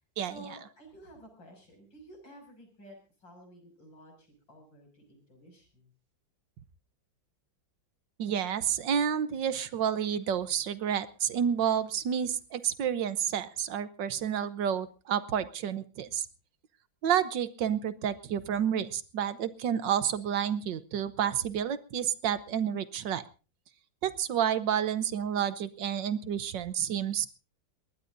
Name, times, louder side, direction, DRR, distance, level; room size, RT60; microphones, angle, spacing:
voice 1, 0.2-5.9, equal, 75° left, 3 dB, 7.3 m, -52 dB
voice 2, 8.2-16.2 17.0-23.2 24.0-27.3, right 9 dB, 75° right, 14 dB, 1.6 m, -30 dB
21.5 x 19.0 x 2.6 m, 0.34 s
omnidirectional pair, 2.0 m